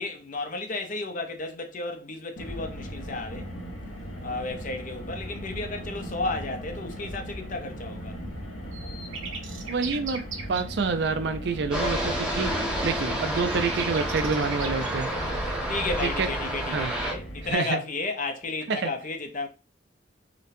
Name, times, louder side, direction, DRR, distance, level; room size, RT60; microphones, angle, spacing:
voice 1, 0.0-3.5 4.2-8.2 15.7-19.5, left 3 dB, 40° left, 0.6 m, -33 dB
Car, 2.4-17.5, equal, 75° left, 1.0 m, -37 dB
sound 1, 8.7-10.6 12.5-12.6 12.9-14.9, right 5 dB, 90° right, 0.7 m, -38 dB
voice 2, 9.7-10.2 10.5-15.1 16.0-16.3 16.7-16.9 17.5-17.8 18.7-18.9, right 4 dB, 60° right, 0.4 m, -28 dB
sound 2, 11.7-17.1, equal, 5° right, 0.8 m, -30 dB
3.9 x 2.1 x 2.6 m
head